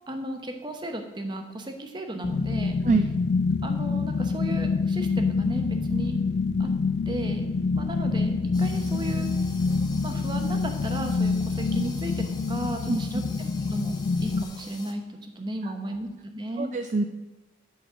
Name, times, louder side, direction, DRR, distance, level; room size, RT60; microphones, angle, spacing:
voice 1, 0.1-2.8 3.6-6.1 6.6-6.7 7.1-9.3 10.0-13.9 14.2-16.7, right 1 dB, 25° right, 5 dB, 0.8 m, -35 dB
sound 1, 2.2-14.4, left 4 dB, 60° left, 0.3 m, -26 dB
sound 2, 8.5-14.9, left 4 dB, 20° left, 0.9 m, -46 dB
voice 2, 12.9-13.2 15.6-15.7 16.6-17.0, right 3 dB, 40° right, 7 dB, 0.3 m, -25 dB
11.0 x 4.0 x 6.0 m, 1.1 s
head